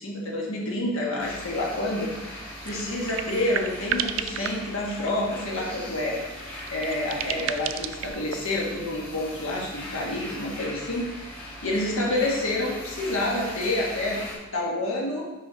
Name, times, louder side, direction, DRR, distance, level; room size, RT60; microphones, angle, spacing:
voice 1, 0.0-6.2 6.7-11.1 11.6-14.2 14.5-15.3, left 1 dB, 80° left, -2 dB, 1.2 m, -28 dB
sound 1, 1.2-14.4, left 1 dB, 10° left, 1.4 m, -40 dB
sound 2, 1.6-1.7 2.0-2.1 2.4-5.4 5.9-8.4, right 9 dB, 70° right, 0.3 m, -33 dB
5.8 x 5.0 x 3.8 m, 1.2 s
head